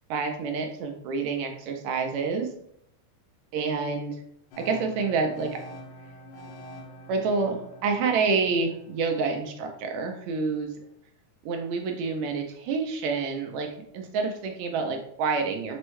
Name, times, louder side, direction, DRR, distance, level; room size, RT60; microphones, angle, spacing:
voice 1, 0.1-2.5 3.5-4.2 4.6-5.6 7.1-10.7 11.4-13.7 13.9-15.8, right 4 dB, 80° right, 4 dB, 1.6 m, -28 dB
sound 1, 4.5-10.4, equal, 75° left, 2.0 m, -47 dB
6.1 x 2.2 x 3.0 m, 0.71 s
omnidirectional pair, 3.5 m